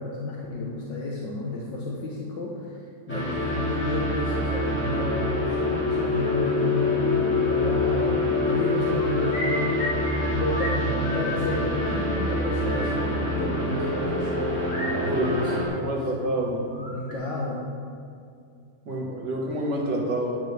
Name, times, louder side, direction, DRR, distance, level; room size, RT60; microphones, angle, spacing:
voice 1, 0.0-2.8 3.1-9.8 10.3-14.7 15.0-15.9 16.4-16.5 16.9-17.6, left 1 dB, 85° left, -3 dB, 1.9 m, -31 dB
sound 1, 3.1-15.7, left 2 dB, 5° left, 2.8 m, -26 dB
sound 2, 8.9-10.3 10.6-10.7 11.0-11.9 12.3-12.4 12.6-12.9 14.7-16.1 16.4-17.1, left 1 dB, 40° left, 3.0 m, -35 dB
voice 2, 15.8-16.6 18.9-20.4, right 1 dB, 70° right, -1 dB, 2.2 m, -28 dB
13.5 x 10.5 x 3.4 m, 2.4 s
omnidirectional pair, 1.9 m